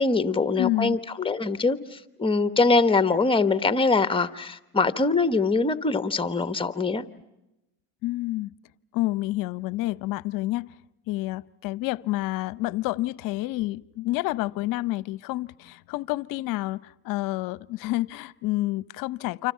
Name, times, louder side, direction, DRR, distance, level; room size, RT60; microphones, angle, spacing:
voice 1, 0.0-7.1, left 3 dB, 15° left, 12 dB, 1.2 m, -23 dB
voice 2, 0.6-1.0 8.0-8.5 8.9-10.7 11.1-19.5, left 18 dB, 55° left, 19 dB, 0.8 m, -29 dB
29.0 x 26.5 x 5.7 m, 0.93 s
supercardioid pair, 105°, 39 cm